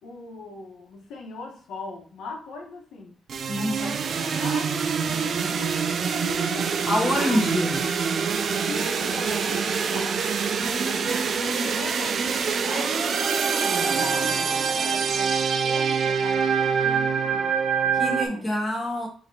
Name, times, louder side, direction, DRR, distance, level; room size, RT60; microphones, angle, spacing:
voice 1, 0.0-3.1 3.5-7.4 8.0-8.4 8.6-10.3 11.0-18.5, left 3 dB, 85° left, 1.1 m, -39 dB
sound 1, 3.3-18.3, right 6 dB, 50° right, 0.3 m, -25 dB
voice 2, 3.5-3.9 6.9-7.8 10.5-11.8 17.9-19.1, left 1 dB, 15° left, 1.2 m, -27 dB
4.9 x 3.0 x 2.8 m
cardioid pair, 140°, 0 cm